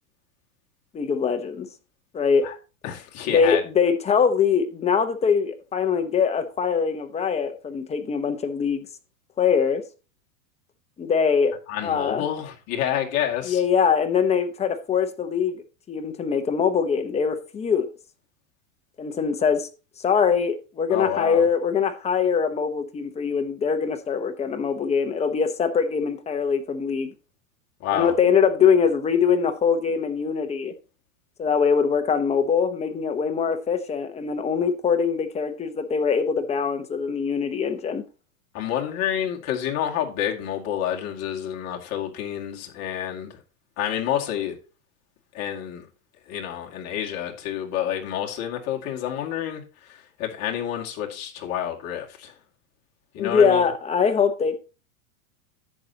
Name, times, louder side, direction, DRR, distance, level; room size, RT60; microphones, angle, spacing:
voice 1, 0.9-1.7 2.1-2.5 3.3-8.9 9.4-9.8 11.0-12.2 13.4-15.6 15.9-17.9 19.0-19.7 20.0-27.1 27.9-30.7 31.4-38.0 53.2-54.6, left 6 dB, 15° left, 0.9 m, -23 dB
voice 2, 2.8-3.6 11.7-13.6 20.9-21.5 27.8-28.1 38.5-43.4 43.8-44.6 45.3-45.9 46.3-52.3 53.1-53.6, left 10 dB, 40° left, 2.2 m, -29 dB
10.5 x 8.3 x 2.9 m
supercardioid pair, 145°, 40 cm